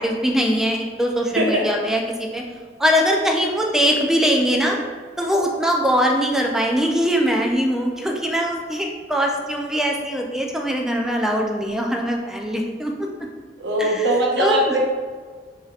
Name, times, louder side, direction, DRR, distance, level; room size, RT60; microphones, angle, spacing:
voice 1, 0.0-2.4 2.8-4.8 5.2-12.9 13.8-14.1 14.4-14.8, equal, 5° right, 0 dB, 0.4 m, -21 dB
voice 2, 1.4-1.7 13.6-14.8, right 1 dB, 90° right, -3 dB, 0.9 m, -20 dB
4.9 x 2.7 x 2.4 m, 1.5 s
head